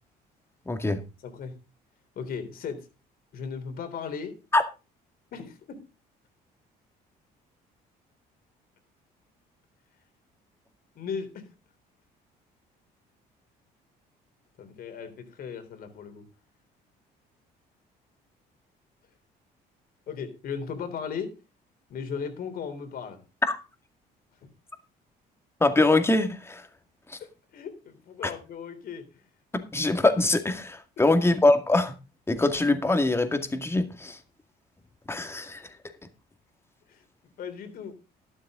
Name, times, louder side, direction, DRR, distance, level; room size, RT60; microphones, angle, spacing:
voice 1, 0.7-1.0 4.5-4.6 23.5-23.6 25.6-26.6 29.5-31.9 32.3-34.2 35.1-35.6, left 2 dB, 15° left, 7 dB, 2.1 m, -23 dB
voice 2, 1.2-1.5 2.2-2.9 3.3-4.4 5.3-5.8 11.0-11.5 14.6-16.3 20.1-21.3 21.9-23.2 24.4-24.5 27.2-29.3 31.0-31.1 36.9-37.0 37.4-37.9, left 6 dB, 60° left, 7 dB, 3.7 m, -37 dB
12.0 x 12.0 x 3.8 m, 0.29 s
cardioid pair, 110°, 17 cm